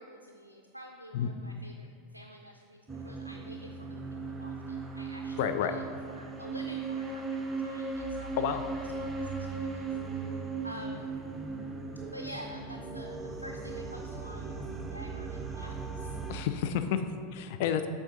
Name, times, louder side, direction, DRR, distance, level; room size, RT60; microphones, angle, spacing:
voice 1, 0.0-8.4 9.0-9.9 10.1-11.2 12.0-16.2, equal, 90° right, 2 dB, 0.3 m, -48 dB
sound 1, 2.9-16.4, right 4 dB, 15° right, 0.6 m, -37 dB
voice 2, 5.4-5.8 8.4-8.6 16.3-17.9, left 8 dB, 55° left, 9 dB, 0.4 m, -30 dB
8.1 x 3.6 x 3.9 m, 2.1 s
figure-of-eight pair, 85°, 0 cm